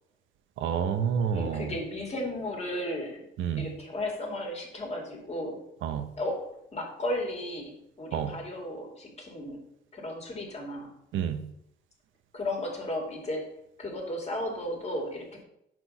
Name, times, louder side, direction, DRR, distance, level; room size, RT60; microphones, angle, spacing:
voice 1, 0.6-1.7 3.4-3.7 5.8-6.1 8.1-8.3 11.1-11.4, right 7 dB, 80° right, 8 dB, 0.8 m, -29 dB
voice 2, 1.3-3.2 3.6-5.6 6.2-6.4 6.7-9.6 9.9-10.9 12.3-13.5 13.8-15.4, left 1 dB, 35° left, -1 dB, 2.4 m, -34 dB
6.0 x 4.6 x 5.5 m, 0.76 s
cardioid pair, 90°, 20 cm